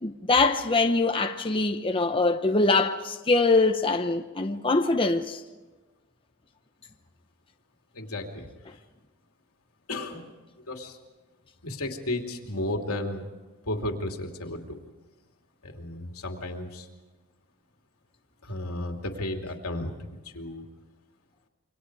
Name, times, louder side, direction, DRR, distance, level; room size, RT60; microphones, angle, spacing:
voice 1, 0.0-5.4, left 3 dB, 25° left, 0.9 m, -23 dB
voice 2, 7.9-8.5 9.9-10.3 10.7-11.0 11.6-13.2 13.7-14.8 15.6-16.9 18.4-20.7, left 1 dB, 85° left, 2.8 m, -33 dB
28.0 x 24.5 x 4.8 m
head